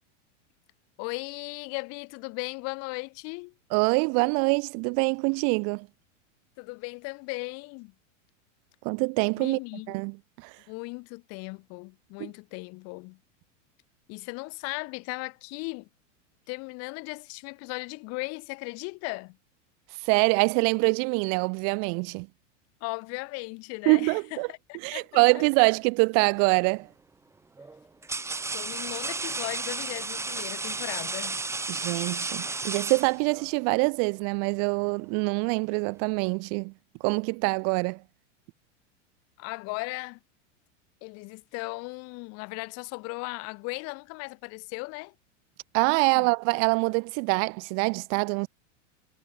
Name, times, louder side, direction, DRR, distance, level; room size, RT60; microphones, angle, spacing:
voice 1, 1.0-3.5 6.6-7.9 9.4-10.0 10.7-13.2 14.1-15.9 16.5-19.4 22.8-25.4 28.5-31.4 39.4-40.2 41.0-45.1 46.1-46.3, left 29 dB, 40° left, 7.7 m, -37 dB
voice 2, 3.7-5.9 8.8-9.6 9.9-10.6 12.2-12.3 20.0-22.3 23.9-24.5 24.8-26.9 31.7-36.7 37.0-38.0 45.7-48.5, right 39 dB, 40° right, 4.1 m, -25 dB
sound 1, 26.4-26.8 27.6-33.5, right 3 dB, 5° right, 5.9 m, -33 dB
supercardioid pair, 165°, 38 cm